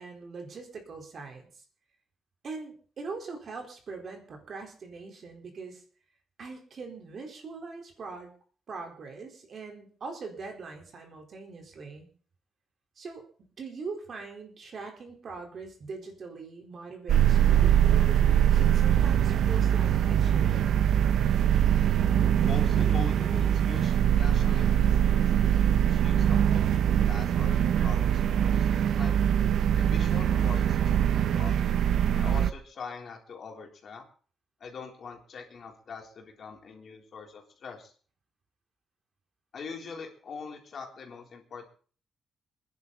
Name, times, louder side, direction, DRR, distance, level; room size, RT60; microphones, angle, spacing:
voice 1, 0.0-1.5 2.4-5.8 6.4-8.3 8.7-12.1 13.0-20.7, right 4 dB, 45° right, 3 dB, 4.3 m, -42 dB
sound 1, 17.1-32.5, right 10 dB, 75° right, 0.8 m, -23 dB
voice 2, 22.4-25.3 25.9-29.1 29.8-31.6 32.1-34.1 34.6-37.9 39.5-41.7, left 5 dB, 50° left, 1 dB, 3.8 m, -43 dB
27.0 x 10.5 x 4.2 m, 0.43 s
wide cardioid pair, 160°, 0 cm